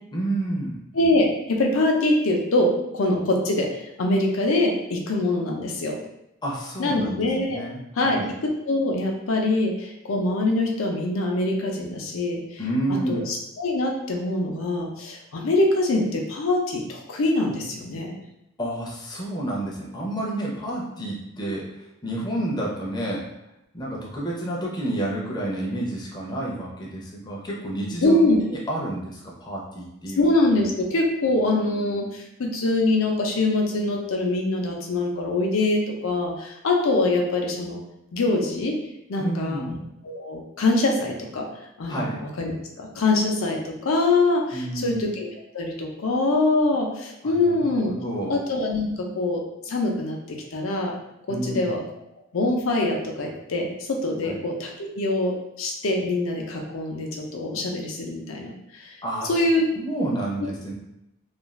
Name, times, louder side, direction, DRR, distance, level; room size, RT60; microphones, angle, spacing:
voice 1, 0.1-0.8 6.4-7.2 7.5-8.3 12.6-13.2 18.6-21.7 22.0-23.2 23.7-30.3 39.2-39.8 41.9-42.2 44.5-45.0 47.2-48.4 51.3-51.7 54.2-54.4 59.0-59.4 59.8-60.7, right 1 dB, 20° left, -4 dB, 0.5 m, -30 dB
voice 2, 0.9-3.7 4.0-6.0 6.8-7.6 8.0-12.6 13.1-18.2 28.0-28.4 30.2-37.8 38.1-38.8 39.1-39.8 40.0-41.4 41.8-45.3 45.5-47.9 48.3-50.9 51.3-51.8 52.3-55.3 55.6-58.9 59.3-59.6, left 2 dB, 80° left, 1 dB, 0.5 m, -24 dB
2.4 x 2.3 x 3.0 m, 0.85 s
head